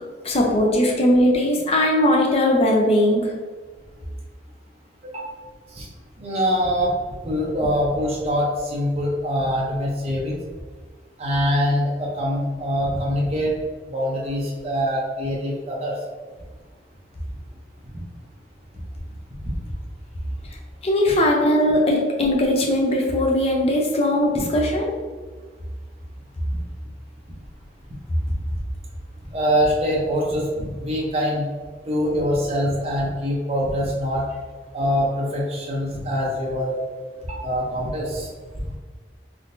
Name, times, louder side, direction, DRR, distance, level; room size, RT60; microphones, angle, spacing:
voice 1, 0.2-3.3 20.8-24.9, left 1 dB, 35° left, 0 dB, 0.6 m, -19 dB
voice 2, 6.2-6.9 7.2-10.4 11.2-13.6 13.9-16.0 19.4-19.6 26.5-26.6 28.2-28.3 29.3-31.5 31.9-34.2 34.7-36.7 37.2-38.3, equal, 35° right, -4 dB, 0.6 m, -24 dB
3.6 x 2.7 x 2.5 m, 1.4 s
head